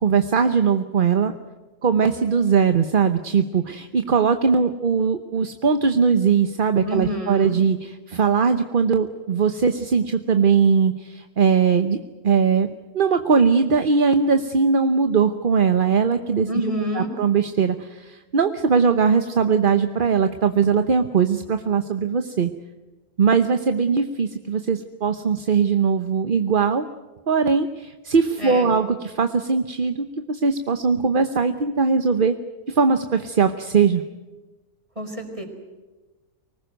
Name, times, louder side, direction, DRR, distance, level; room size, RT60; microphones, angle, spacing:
voice 1, 0.0-1.3 1.8-12.0 12.2-12.7 12.9-16.5 16.9-22.5 23.2-26.8 27.3-32.3 32.7-34.0, right 5 dB, 40° right, 8 dB, 1.0 m, -20 dB
voice 2, 6.8-7.5 16.5-17.1 28.4-28.7 35.0-35.4, equal, 20° right, 4 dB, 4.7 m, -28 dB
24.5 x 19.5 x 9.1 m, 1.2 s
omnidirectional pair, 1.5 m